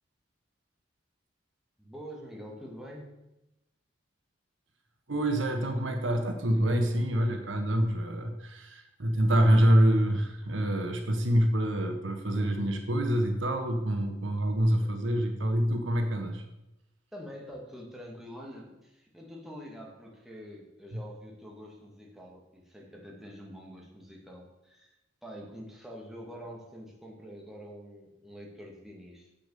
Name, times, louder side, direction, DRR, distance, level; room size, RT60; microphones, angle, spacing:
voice 1, 1.8-3.2 17.1-24.9 25.2-29.3, equal, ahead, -2 dB, 2.0 m, -46 dB
voice 2, 5.1-16.4 20.9-21.0, equal, 80° right, 5 dB, 1.4 m, -26 dB
7.6 x 7.1 x 6.9 m, 0.91 s
head